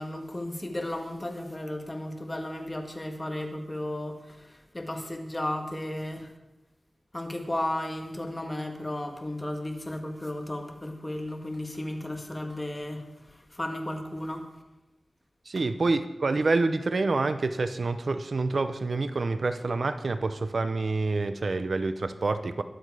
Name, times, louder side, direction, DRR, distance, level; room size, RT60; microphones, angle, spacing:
voice 1, 0.0-6.3 7.1-14.4 15.5-15.7, left 1 dB, 20° left, 4 dB, 1.8 m, -34 dB
voice 2, 15.5-22.6, right 3 dB, 60° right, 10 dB, 0.7 m, -27 dB
21.0 x 7.8 x 4.9 m, 1.0 s
wide cardioid pair, 85°, 0 cm